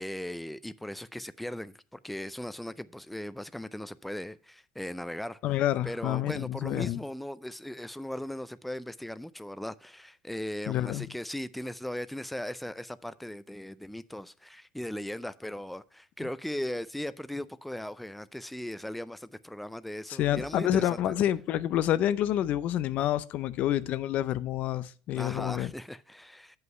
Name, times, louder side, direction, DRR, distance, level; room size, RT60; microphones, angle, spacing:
voice 1, 0.0-5.4 5.8-21.1 25.1-26.6, left 1 dB, 5° left, 0.4 m, -38 dB
voice 2, 5.4-7.0 10.7-11.1 20.1-25.7, left 12 dB, 60° left, 0.5 m, -28 dB
7.9 x 5.4 x 5.3 m
supercardioid pair, 90°, 3 cm